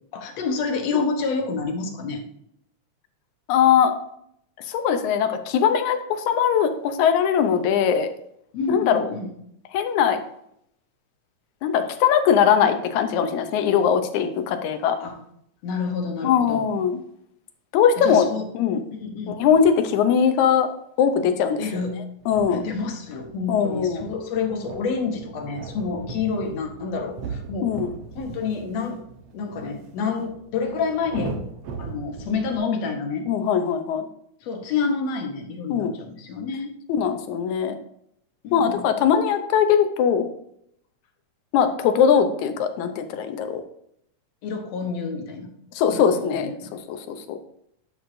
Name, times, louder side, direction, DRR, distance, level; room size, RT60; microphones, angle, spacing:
voice 1, 0.1-2.2 8.5-9.3 15.0-15.2 15.6-16.7 18.0-18.5 18.9-19.4 21.6-22.0 22.5-27.7 28.2-29.0 29.3-31.4 31.8-33.3 34.4-36.8 38.4-38.9 44.4-45.5 45.9-46.7, left 4 dB, 70° left, 4 dB, 2.1 m, -28 dB
voice 2, 3.5-4.0 4.7-8.1 8.7-9.1 9.7-10.2 11.6-15.0 16.2-17.0 17.7-18.3 18.5-18.8 19.3-20.7 21.0-21.6 22.3-22.6 23.5-24.1 27.6-27.9 33.3-34.1 35.7-35.9 36.9-37.7 38.5-40.3 41.5-43.6 45.8-46.5 46.9-47.4, left 7 dB, 85° left, 8 dB, 2.2 m, -20 dB
sound 1, 22.2-32.6, right 4 dB, 65° right, 1.9 m, -39 dB
11.0 x 6.3 x 2.6 m, 0.72 s
omnidirectional pair, 3.3 m